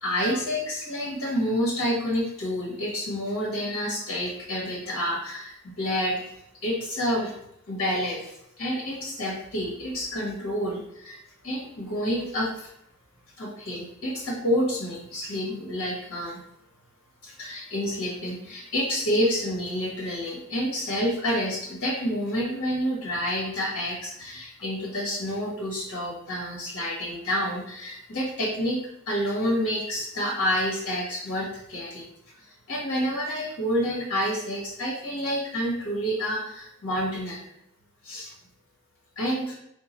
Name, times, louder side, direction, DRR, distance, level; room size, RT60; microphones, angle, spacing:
voice 1, 0.0-6.2 6.6-7.3 7.7-11.2 11.4-12.7 13.4-16.4 17.2-32.0 32.4-37.5 38.0-38.3 39.2-39.5, equal, 90° left, -3 dB, 1.2 m, -29 dB
3.8 x 2.3 x 4.2 m, 0.77 s
head